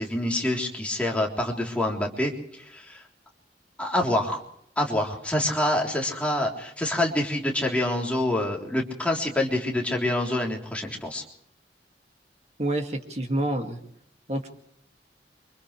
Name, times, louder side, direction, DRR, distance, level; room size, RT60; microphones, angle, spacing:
voice 1, 0.0-3.0 3.8-4.4 4.8-11.2, left 1 dB, 5° left, -1 dB, 3.6 m, -26 dB
voice 2, 12.6-13.8 14.3-14.5, right 1 dB, 40° right, 3 dB, 2.3 m, -27 dB
30.0 x 25.5 x 3.4 m, 0.70 s
head